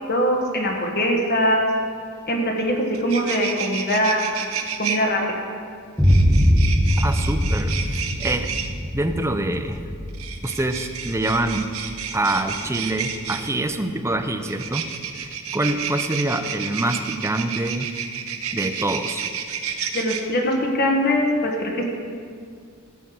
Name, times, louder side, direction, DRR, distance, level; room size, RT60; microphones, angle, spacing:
voice 1, 0.1-1.6 2.3-4.5 4.8-5.4 19.9-21.8, equal, 45° left, 1 dB, 1.4 m, -22 dB
sound 1, 2.6-2.7 2.9-5.0 6.0-8.7 10.1-13.5 14.4-20.2, right 7 dB, 75° right, 0.9 m, -30 dB
Boom, 6.0-13.8, equal, 5° left, 1.3 m, -23 dB
voice 2, 7.0-8.5 8.9-9.8 10.4-11.7 12.1-14.9 15.1-17.9 18.5-19.2, right 2 dB, 15° right, 6 dB, 0.6 m, -25 dB
13.0 x 5.8 x 7.8 m, 2.2 s
head